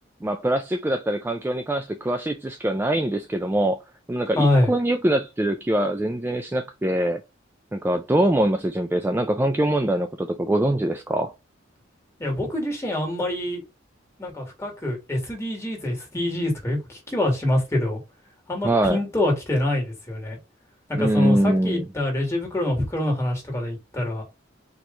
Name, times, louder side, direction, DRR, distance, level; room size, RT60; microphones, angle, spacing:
voice 1, 0.2-3.8 4.1-7.2 7.7-11.3 18.6-19.0 20.9-21.9, right 1 dB, 10° right, 0.3 m, -23 dB
voice 2, 4.3-4.7 12.2-13.6 14.2-18.0 18.5-20.4 20.9-24.2, left 1 dB, 15° left, 2.0 m, -25 dB
4.5 x 3.1 x 3.8 m
head